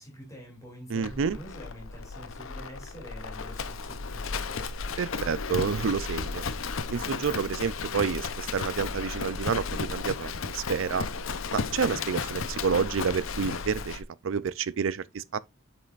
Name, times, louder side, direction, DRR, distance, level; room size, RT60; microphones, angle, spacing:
voice 1, 0.0-4.7, equal, 15° left, 2.7 m, -46 dB
voice 2, 0.9-1.4 5.0-11.1 11.5-15.4, right 6 dB, 65° right, 0.4 m, -29 dB
Livestock farm animals working animals, 1.0-14.0, left 4 dB, 70° left, 0.7 m, -34 dB
8.2 x 5.5 x 2.4 m
head